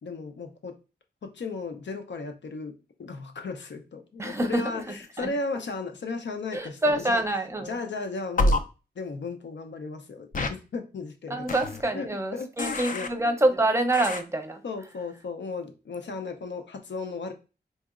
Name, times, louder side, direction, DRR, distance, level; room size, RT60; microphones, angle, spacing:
voice 1, 0.0-0.7 1.2-7.2 7.6-8.6 9.0-11.5 11.9-13.1 14.6-17.3, left 3 dB, 90° left, 0.6 m, -35 dB
voice 2, 4.2-4.8 5.2-5.3 6.5-7.8 11.3-14.6, right 1 dB, 15° right, 0.6 m, -26 dB
sound 1, 8.4-8.6 10.3-10.5 11.5-11.8 12.6-13.1 13.9-14.2, left 1 dB, 50° left, 0.4 m, -26 dB
4.0 x 2.8 x 2.4 m
wide cardioid pair, 115°, 18 cm